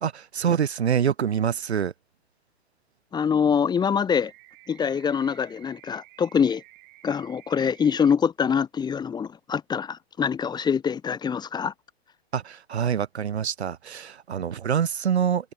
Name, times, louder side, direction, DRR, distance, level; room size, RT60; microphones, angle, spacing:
voice 1, 0.0-1.9 12.3-15.5, right 8 dB, 90° right, 1.3 m, -25 dB
voice 2, 3.1-4.3 4.7-6.6 7.0-11.7, left 7 dB, 15° left, 0.9 m, -24 dB
sound 1, 4.1-8.1, right 26 dB, 50° right, 7.9 m, -52 dB
hypercardioid pair, 120°, 32 cm